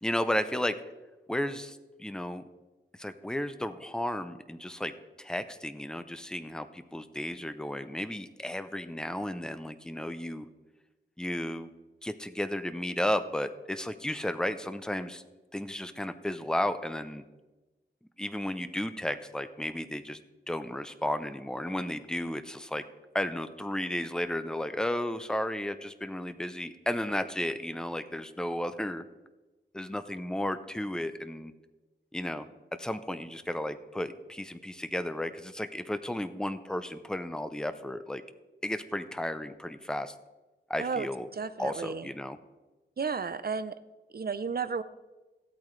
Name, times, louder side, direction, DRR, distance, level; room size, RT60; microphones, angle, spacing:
voice 1, 0.0-0.8 1.3-2.4 3.0-10.5 11.2-11.7 12.0-15.2 15.5-17.2 18.2-20.2 20.5-22.8 23.1-29.0 29.7-31.5 32.1-32.5 32.8-38.2 38.6-40.1 40.7-41.3 41.6-42.4, left 1 dB, 5° left, 11 dB, 0.6 m, -33 dB
voice 2, 41.3-42.1 43.0-43.7 44.1-44.8, right 5 dB, 50° right, 13 dB, 0.6 m, -32 dB
15.5 x 8.6 x 3.2 m, 1.1 s
wide cardioid pair, 80°, 20 cm